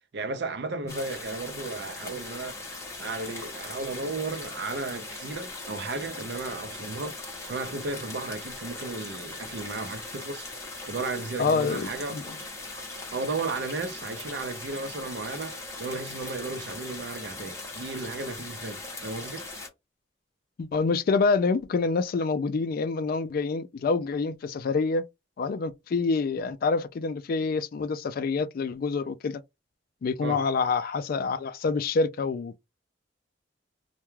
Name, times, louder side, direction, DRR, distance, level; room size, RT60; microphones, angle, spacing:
voice 1, 0.1-2.6 3.0-10.5 10.9-12.2 12.7-12.8 13.1-19.5 30.2-30.4, right 3 dB, 65° right, 0.5 m, -34 dB
sound 1, 0.9-19.7, left 2 dB, 15° left, 0.8 m, -40 dB
voice 2, 11.4-12.2 20.6-25.1 25.4-29.4 30.0-32.6, left 4 dB, 50° left, 0.3 m, -27 dB
2.3 x 2.2 x 3.0 m
head